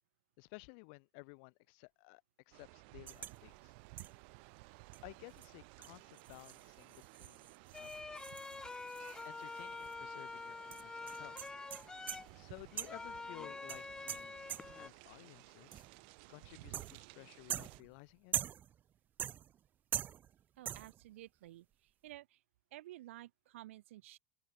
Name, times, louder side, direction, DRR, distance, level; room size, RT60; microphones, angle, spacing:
voice 1, 0.4-3.7 5.0-7.5 7.7-8.0 9.2-11.4 12.3-14.4 14.8-15.8 16.3-18.3, left 38 dB, 60° left, 6.7 m, -55 dB
sound 1, 2.5-17.8, right 33 dB, 60° right, 3.8 m, -57 dB
sound 2, 3.1-3.4 4.0-4.3 4.9-5.0 5.4-5.5 5.8-9.6 9.8-9.9 10.7-12.4 12.8-13.1 13.7-14.9 15.7-16.1 16.7-17.1 17.5-18.8 19.2-19.7 19.9-20.4 20.6-21.0, right 10 dB, 25° right, 0.8 m, -43 dB
sound 3, 7.7-14.9, left 3 dB, 10° left, 3.1 m, -47 dB
voice 2, 20.6-22.4 22.7-24.2, right 15 dB, 90° right, 6.2 m, -53 dB
open air
supercardioid pair, 155°, 7 cm